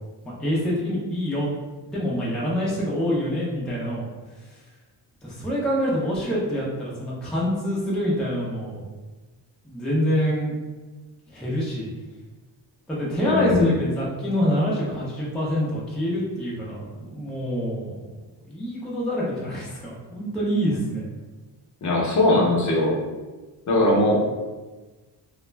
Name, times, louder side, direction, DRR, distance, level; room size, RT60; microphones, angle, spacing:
voice 1, 0.2-1.5 1.9-4.1 5.2-8.8 9.6-10.5 11.3-11.9 12.9-18.2 18.5-21.0, equal, ahead, -6 dB, 0.4 m, -26 dB
voice 2, 13.2-13.7 21.8-23.0 23.7-24.2, left 2 dB, 45° left, -2 dB, 0.6 m, -20 dB
2.3 x 2.1 x 3.2 m, 1.2 s
wide cardioid pair, 155°, 42 cm